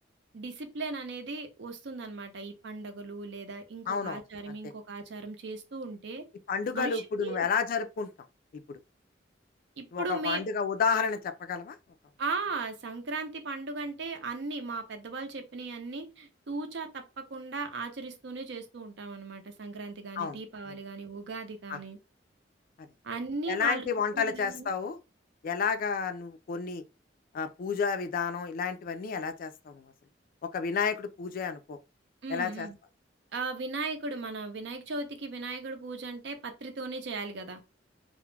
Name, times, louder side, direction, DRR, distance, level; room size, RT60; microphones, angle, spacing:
voice 1, 0.3-6.2 6.7-7.5 9.8-10.4 12.2-22.0 23.0-23.9 24.1-24.7 32.2-32.8 33.3-37.6, right 3 dB, 70° right, 0.5 m, -37 dB
voice 2, 3.9-4.2 4.5-4.6 6.5-8.1 8.7-8.8 9.9-11.7 20.2-20.4 20.7-20.8 21.7-21.8 23.5-25.0 25.4-26.8 27.3-29.8 30.5-31.8 32.3-32.7, left 6 dB, 50° left, 0.3 m, -31 dB
2.3 x 2.0 x 3.1 m
head